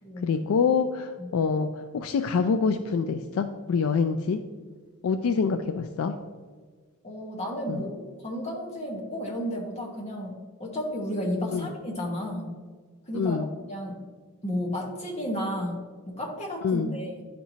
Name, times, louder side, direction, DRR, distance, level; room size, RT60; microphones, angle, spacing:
voice 1, 0.2-4.4 5.0-6.1 7.7-7.8 11.5-11.7 13.1-13.5 16.6-16.9, left 5 dB, 70° left, 8 dB, 0.3 m, -26 dB
voice 2, 7.0-12.5 13.1-14.0 14.4-17.2, equal, 30° left, -1 dB, 1.2 m, -33 dB
10.5 x 4.3 x 2.8 m, 1.5 s
head